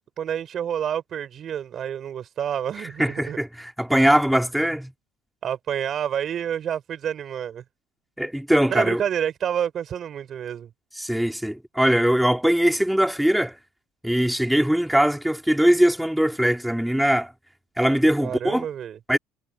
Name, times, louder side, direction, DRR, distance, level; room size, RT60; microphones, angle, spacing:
voice 1, 0.2-3.4 5.4-7.6 8.7-10.7 18.2-19.0, right 9 dB, 40° right, 4.6 m, -28 dB
voice 2, 3.0-4.9 8.2-9.0 10.9-13.6 14.0-17.3 17.8-18.7 19.1-19.2, equal, ahead, 2.8 m, -21 dB
cardioid pair, 125°, 0 cm